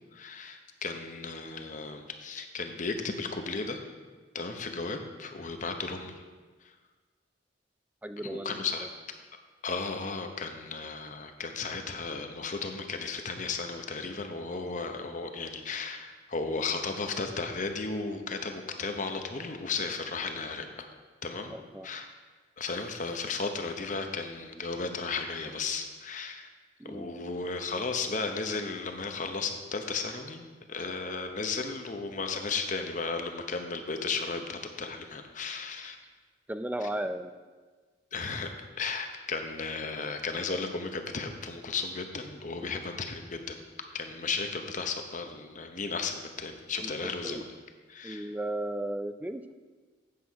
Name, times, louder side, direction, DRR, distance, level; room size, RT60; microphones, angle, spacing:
voice 1, 0.1-3.8 4.3-6.1 6.6-6.7 8.2-8.9 9.6-20.7 21.2-22.1 22.6-26.5 26.8-36.0 36.8-36.9 38.1-43.6 43.9-47.4 47.9-48.3, left 4 dB, 40° left, 5 dB, 0.8 m, -35 dB
voice 2, 8.0-8.5 21.5-21.9 26.8-27.1 36.5-37.3 42.6-42.7 46.8-46.9 47.2-47.4 48.0-49.5, right 1 dB, 10° right, 9 dB, 0.3 m, -35 dB
8.6 x 7.4 x 4.7 m, 1.4 s
head